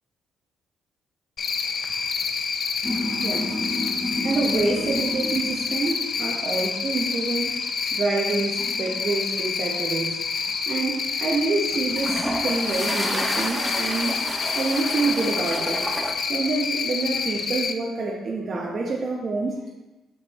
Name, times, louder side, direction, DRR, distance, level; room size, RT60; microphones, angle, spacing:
Cricket, 1.4-17.7, left 5 dB, 55° left, 0.5 m, -28 dB
sound 1, 2.8-6.0 6.5-6.8 8.3-10.0 10.4-10.7 11.7-16.1, equal, ahead, 0.7 m, -31 dB
voice 1, 3.0-3.9 4.2-7.7 7.9-14.2 14.5-15.9 16.3-19.6, right 3 dB, 45° right, -3 dB, 1.0 m, -27 dB
7.6 x 5.3 x 3.0 m, 1.1 s
cardioid pair, 90°, 0 cm